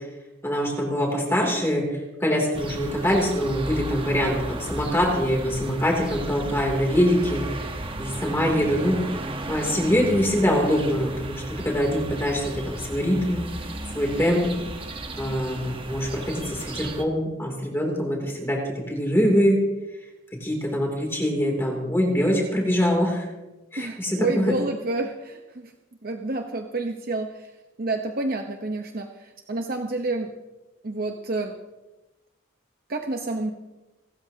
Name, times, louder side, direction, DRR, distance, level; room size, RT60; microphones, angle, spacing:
voice 1, 0.4-1.8 2.2-7.4 8.0-9.0 9.5-13.4 13.9-14.5 15.2-18.6 18.9-19.6 20.4-23.2 23.7-24.5, equal, 10° left, 0 dB, 2.9 m, -23 dB
sound 1, 2.5-17.0, right 2 dB, 25° right, 1.1 m, -34 dB
voice 2, 23.8-25.7 26.0-27.5 27.8-30.3 30.8-31.5 32.9-33.5, right 2 dB, 50° right, 4 dB, 1.0 m, -29 dB
29.0 x 13.5 x 2.9 m, 1.1 s
head